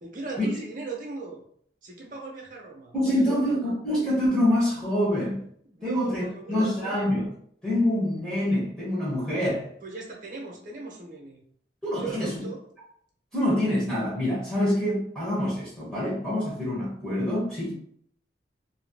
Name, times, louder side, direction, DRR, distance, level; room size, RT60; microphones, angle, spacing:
voice 1, 0.0-1.4 1.8-3.5 5.6-6.9 9.8-11.4 12.0-12.6, right 4 dB, 50° right, -2 dB, 0.8 m, -38 dB
voice 2, 2.9-5.4 5.8-7.2 7.6-9.7 11.8-12.4 13.3-17.7, left 1 dB, 5° left, -9 dB, 1.0 m, -26 dB
3.0 x 2.8 x 2.2 m, 0.64 s
head